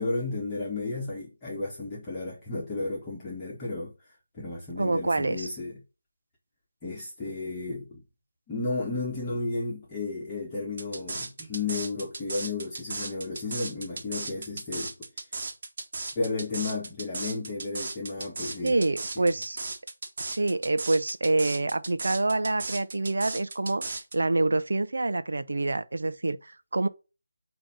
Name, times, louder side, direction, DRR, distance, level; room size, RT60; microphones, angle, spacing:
voice 1, 0.0-3.9 4.3-5.8 6.8-8.0 8.5-14.9 16.1-18.8 19.1-19.3, left 3 dB, 15° left, 1.6 m, -33 dB
voice 2, 4.8-5.5 18.6-19.6 20.2-23.8 24.1-26.9, right 2 dB, 70° right, 0.7 m, -26 dB
sound 1, 10.8-24.1, right 3 dB, 40° right, 1.6 m, -36 dB
8.8 x 3.0 x 5.7 m
figure-of-eight pair, 165°, 0 cm